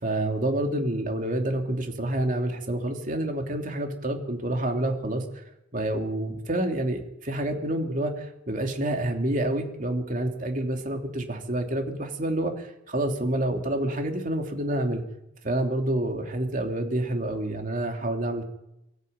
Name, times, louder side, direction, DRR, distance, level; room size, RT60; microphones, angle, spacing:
voice 1, 0.0-5.4 5.7-15.0 15.4-18.4, right 1 dB, 45° right, 3 dB, 2.9 m, -28 dB
23.5 x 13.5 x 9.1 m, 0.86 s
head